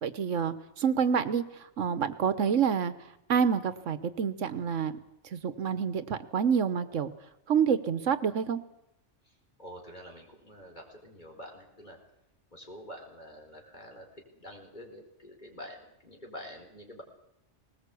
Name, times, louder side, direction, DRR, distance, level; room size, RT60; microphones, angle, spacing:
voice 1, 0.0-1.4 1.8-2.9 3.3-4.9 5.3-7.1 7.5-8.6, right 7 dB, 80° right, 13 dB, 1.4 m, -27 dB
voice 2, 9.2-12.0 12.5-14.1 14.3-17.0, equal, 35° left, 2 dB, 4.6 m, -47 dB
19.5 x 19.5 x 8.4 m, 0.83 s
omnidirectional pair, 1.3 m